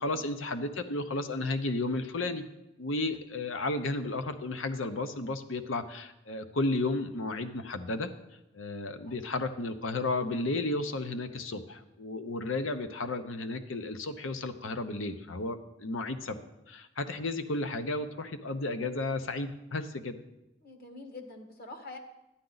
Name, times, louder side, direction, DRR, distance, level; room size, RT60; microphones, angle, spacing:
voice 1, 0.0-2.4 2.8-8.1 8.5-16.4 16.7-20.1, left 2 dB, 85° left, 9 dB, 0.8 m, -33 dB
voice 2, 20.6-22.0, left 2 dB, 50° left, 4 dB, 1.4 m, -46 dB
12.0 x 9.8 x 3.9 m, 0.90 s
head